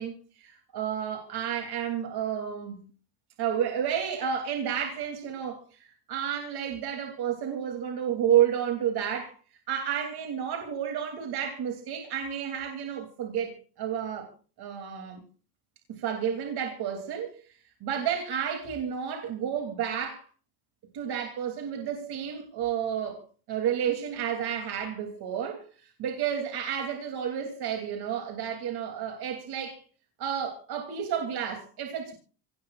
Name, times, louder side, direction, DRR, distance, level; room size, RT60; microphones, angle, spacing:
voice 1, 0.0-2.8 3.4-9.3 9.7-14.3 14.6-15.2 16.0-17.4 17.8-20.2 20.9-23.2 23.5-29.8 30.2-32.1, right 9 dB, 65° right, 2.9 m, -31 dB
25.5 x 17.5 x 2.4 m
cardioid pair, 105°, 42 cm